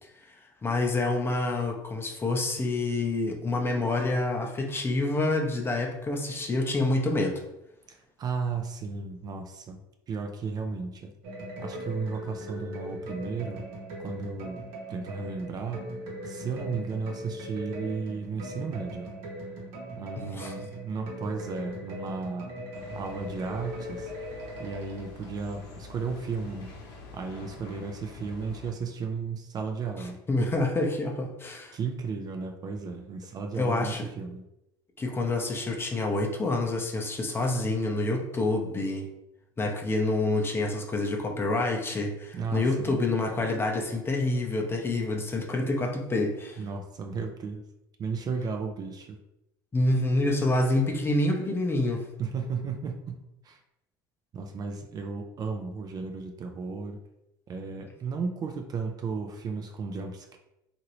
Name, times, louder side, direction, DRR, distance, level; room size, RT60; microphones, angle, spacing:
voice 1, 0.0-7.4 20.2-20.5 30.3-31.8 33.5-34.0 35.0-39.0 39.6-46.6 49.7-52.0, left 2 dB, 20° left, 1 dB, 0.6 m, -27 dB
voice 2, 7.9-9.8 10.1-11.1 11.6-13.6 14.0-14.6 14.9-15.8 16.2-19.1 20.0-22.5 22.9-24.1 24.6-26.7 27.1-30.2 31.7-34.4 42.3-43.0 46.6-47.6 48.0-49.2 52.2-53.6 54.3-57.0 57.5-60.4, right 4 dB, 35° right, 4 dB, 0.4 m, -34 dB
Rừng Xanh Hoang Dã, 11.2-25.3, equal, 70° right, 1.0 m, -40 dB
sound 1, 22.7-28.7, left 3 dB, 80° left, 0.7 m, -46 dB
2.9 x 2.5 x 2.9 m, 0.87 s
supercardioid pair, 95°, 11 cm